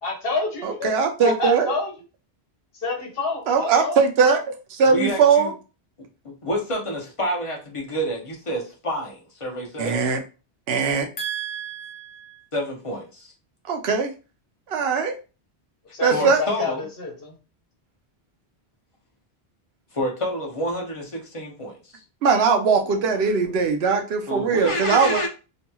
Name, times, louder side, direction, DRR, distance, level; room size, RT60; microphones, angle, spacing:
voice 1, 0.0-0.9 1.2-1.9 2.7-4.0 15.9-17.3 22.8-23.1 23.4-23.5, left 3 dB, 65° left, 1.0 m, -28 dB
voice 2, 0.6-1.7 3.5-5.5 9.8-10.2 10.7-11.1 13.7-14.1 14.7-15.2 16.0-16.4 22.2-25.3, right 5 dB, 75° right, 0.8 m, -20 dB
voice 3, 4.9-5.5 6.2-10.0 11.2-13.3 16.1-16.8 19.9-22.0 24.3-25.3, equal, 35° left, 0.7 m, -29 dB
2.9 x 2.7 x 2.2 m
omnidirectional pair, 1.1 m